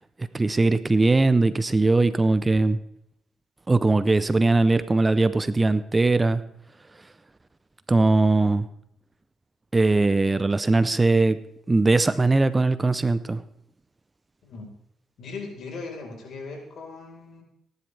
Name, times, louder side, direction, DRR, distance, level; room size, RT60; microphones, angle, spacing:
voice 1, 0.3-2.8 3.7-6.4 7.9-8.7 9.7-11.4 11.7-13.4, right 3 dB, 20° right, 14 dB, 0.6 m, -20 dB
voice 2, 15.2-17.4, left 3 dB, 65° left, 0 dB, 4.4 m, -38 dB
17.0 x 11.0 x 3.4 m, 0.73 s
cardioid pair, 90°, 0 cm